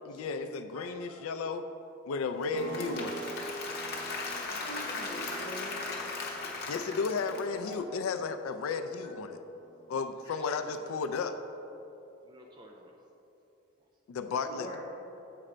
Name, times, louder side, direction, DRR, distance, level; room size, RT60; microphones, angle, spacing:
voice 1, 0.1-1.6 2.1-3.2 6.7-9.4 9.9-11.4 14.1-14.8, left 4 dB, 85° left, 9 dB, 0.3 m, -33 dB
voice 2, 0.7-1.2 4.5-5.8 7.2-8.0 10.2-10.3 14.4-14.8, equal, 20° left, -5 dB, 1.6 m, -45 dB
Applause / Crowd, 2.4-7.7, left 3 dB, 50° left, 1.0 m, -38 dB
sound 1, 2.5-10.9, right 1 dB, 80° right, 0.9 m, -46 dB
voice 3, 4.2-4.9 10.4-11.0 12.2-13.0, right 1 dB, 20° right, 1 dB, 0.4 m, -54 dB
7.5 x 4.3 x 5.0 m, 3.0 s
head